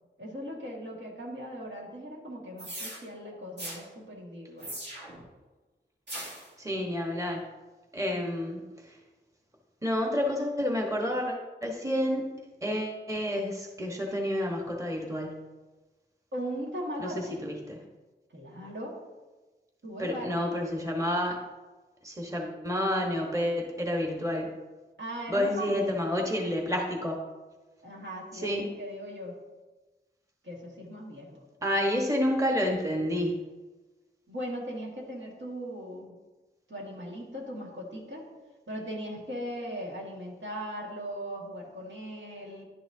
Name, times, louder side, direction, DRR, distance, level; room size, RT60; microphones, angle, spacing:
voice 1, 0.2-4.7 16.3-17.4 18.3-18.9 19.8-20.9 25.0-26.0 27.8-29.4 30.4-31.4 34.3-36.2 36.7-38.2 38.7-42.6, equal, 80° right, -3 dB, 1.8 m, -39 dB
sound 1, 2.6-3.0 3.6-3.8 4.6-5.2 6.1-6.5, right 1 dB, 65° right, 2.0 m, -39 dB
voice 2, 6.6-7.4 7.9-8.6 8.9-9.0 9.8-12.3 12.6-15.4 17.0-17.8 20.0-21.4 22.0-24.5 25.3-27.2 28.3-28.6 31.6-33.3, left 1 dB, 15° right, 0 dB, 1.2 m, -29 dB
11.0 x 6.0 x 2.7 m, 1.2 s
wide cardioid pair, 75°, 19 cm